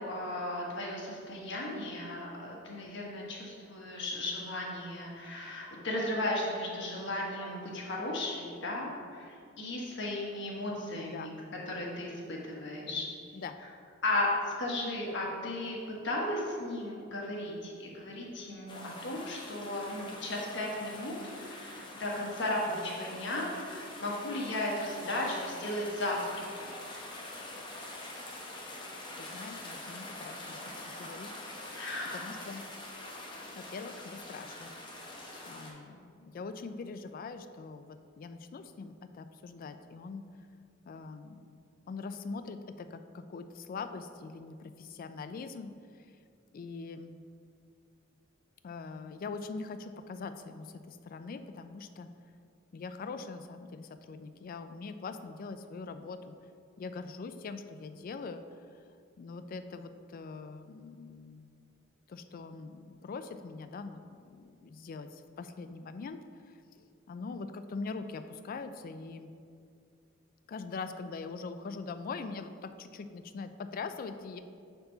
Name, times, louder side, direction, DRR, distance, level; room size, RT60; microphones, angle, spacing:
voice 1, 0.0-11.3 11.7-13.1 14.0-15.8 16.0-26.7 31.7-32.3, left 1 dB, 60° left, -3 dB, 1.2 m, -35 dB
sound 1, 18.7-35.7, left 1 dB, 25° left, 0.8 m, -45 dB
voice 2, 29.2-31.3 32.1-32.6 33.5-35.1 35.5-40.2 40.9-41.5 41.9-45.7 46.0-46.1 46.5-47.2 48.6-52.1 52.7-56.3 56.8-58.4 59.2-61.5 62.1-66.2 66.5-69.3 70.5-74.4, left 4 dB, 45° left, 9 dB, 0.3 m, -42 dB
6.9 x 4.5 x 3.9 m, 2.3 s
head